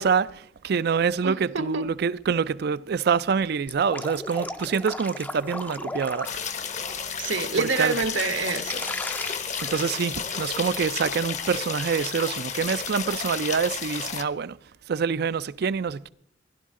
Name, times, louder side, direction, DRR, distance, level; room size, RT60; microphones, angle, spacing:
voice 1, 0.0-6.3 7.6-7.9 9.6-14.6 14.9-16.1, right 6 dB, 55° right, 0.4 m, -26 dB
voice 2, 1.2-1.9 7.2-9.0, right 4 dB, 75° right, 1.1 m, -27 dB
Drip, 3.7-7.2 7.6-10.7, left 2 dB, 10° left, 0.5 m, -36 dB
sound 1, 6.2-14.2, left 6 dB, 40° left, 0.8 m, -32 dB
16.5 x 11.0 x 3.7 m
head